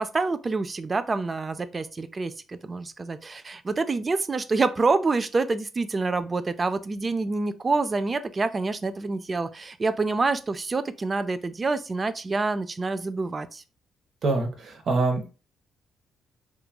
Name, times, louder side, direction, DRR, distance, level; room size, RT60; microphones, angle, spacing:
voice 1, 0.0-13.6, right 3 dB, 30° right, 0.3 m, -27 dB
voice 2, 14.2-15.3, right 3 dB, 55° right, 0.9 m, -25 dB
2.9 x 2.4 x 2.2 m
cardioid pair, 90°, 0 cm